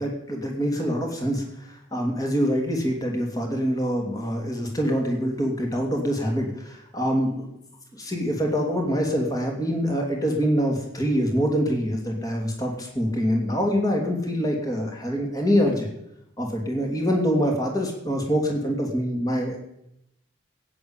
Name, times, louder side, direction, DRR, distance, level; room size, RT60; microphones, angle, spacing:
voice 1, 0.0-7.5 7.9-15.9 16.4-19.6, equal, 20° left, 1 dB, 2.8 m, -25 dB
15.5 x 8.9 x 8.9 m, 0.81 s
head